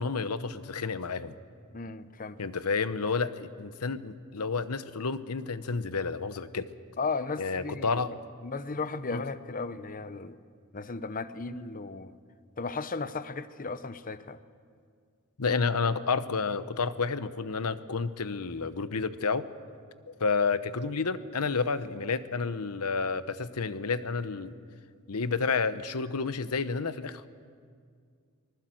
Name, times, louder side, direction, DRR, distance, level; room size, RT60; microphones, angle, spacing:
voice 1, 0.0-1.3 2.4-6.7 7.4-8.1 9.1-9.2 15.4-19.5 20.1-24.5 25.1-27.3, left 4 dB, 90° left, 13 dB, 0.9 m, -30 dB
voice 2, 1.7-2.4 7.0-8.2 8.4-10.4 10.7-12.2 12.6-14.4, left 4 dB, 40° left, 13 dB, 0.8 m, -35 dB
24.5 x 20.0 x 7.8 m, 2.1 s
head